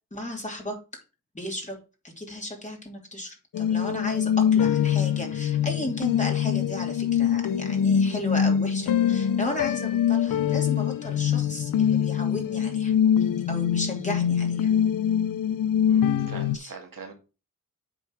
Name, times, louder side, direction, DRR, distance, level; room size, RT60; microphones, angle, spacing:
voice 1, 0.1-0.8 1.3-1.8 2.0-12.9 13.5-14.7 16.5-16.7, left 1 dB, 20° left, 1 dB, 2.9 m, -34 dB
sound 1, 3.5-16.6, left 9 dB, 80° left, 0.5 m, -24 dB
voice 2, 15.9-17.2, right 4 dB, 85° right, 2 dB, 2.2 m, -42 dB
8.0 x 4.5 x 4.7 m, 0.31 s
wide cardioid pair, 85°, 32 cm